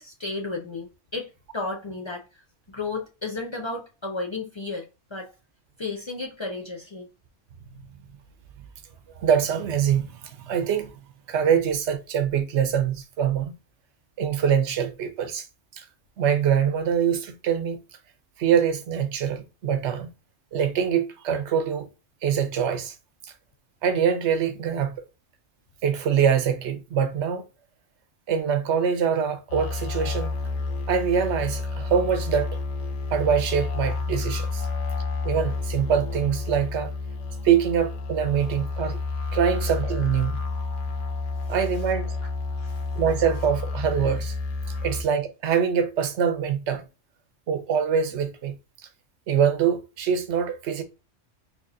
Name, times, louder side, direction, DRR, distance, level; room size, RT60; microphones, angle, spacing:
voice 1, 0.0-2.4 2.7-4.8 5.1-5.3 5.8-7.1 34.6-34.9 42.6-42.8 44.6-44.9, left 3 dB, 50° left, 0.3 m, -33 dB
voice 2, 9.2-10.9 11.3-13.5 14.2-15.5 15.8-15.9 16.2-17.8 18.4-20.1 20.5-21.9 22.2-23.0 23.2-23.3 23.8-25.0 25.8-27.4 28.3-30.4 30.9-32.5 33.1-34.7 35.2-36.9 37.4-39.0 39.3-40.4 41.5-42.2 42.9-44.3 44.8-46.8 47.5-48.5 49.3-50.8, right 8 dB, 70° right, 0.9 m, -24 dB
sound 1, 29.5-45.0, left 3 dB, 75° left, 1.0 m, -30 dB
4.0 x 2.9 x 2.4 m
omnidirectional pair, 1.3 m